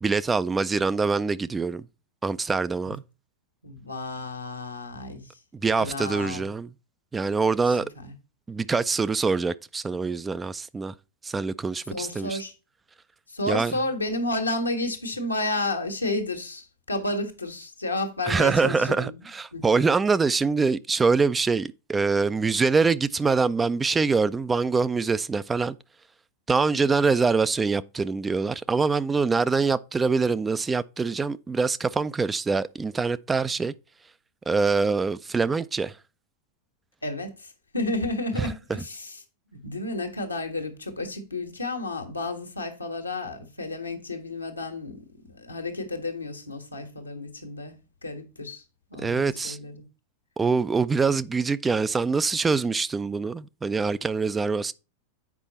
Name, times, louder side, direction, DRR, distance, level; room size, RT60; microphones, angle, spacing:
voice 1, 0.0-1.8 2.2-3.0 5.6-6.7 7.1-7.9 8.5-10.9 11.2-12.4 13.5-13.7 18.2-25.8 26.5-33.7 34.5-36.0 38.4-38.5 49.0-49.6 50.4-54.7, right 4 dB, 15° right, 0.4 m, -24 dB
voice 2, 3.6-5.4 5.8-6.4 7.7-8.1 11.9-12.5 13.3-19.2 19.5-19.8 26.7-26.8 37.0-39.2 39.5-48.6 48.9-49.8, left 2 dB, 80° left, 1.6 m, -32 dB
8.3 x 5.3 x 4.1 m
figure-of-eight pair, 90°, 0 cm